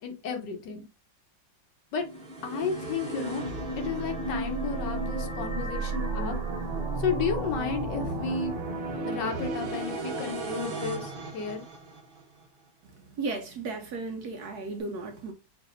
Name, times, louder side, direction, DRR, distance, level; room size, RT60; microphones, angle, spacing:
voice 1, 0.0-0.8 1.9-2.0 2.4-3.4 3.8-6.4 7.0-8.5 9.1-11.6, left 5 dB, 70° left, 1.4 m, -32 dB
sound 1, 2.0-12.2, right 2 dB, 90° right, 0.4 m, -33 dB
voice 2, 13.0-15.3, right 3 dB, 70° right, 1.0 m, -35 dB
5.8 x 2.6 x 2.5 m
omnidirectional pair, 2.1 m